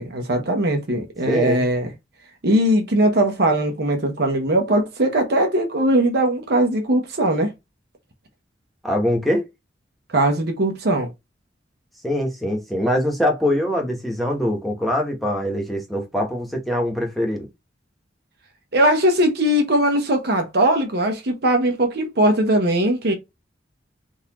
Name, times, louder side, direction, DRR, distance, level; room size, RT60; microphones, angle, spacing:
voice 1, 0.0-1.9 2.4-7.5 10.1-11.1 18.7-23.1, right 1 dB, 60° right, 0.8 m, -20 dB
voice 2, 1.3-1.6 8.8-9.4 12.0-17.5, left 1 dB, ahead, 1.0 m, -23 dB
3.9 x 2.5 x 2.9 m
head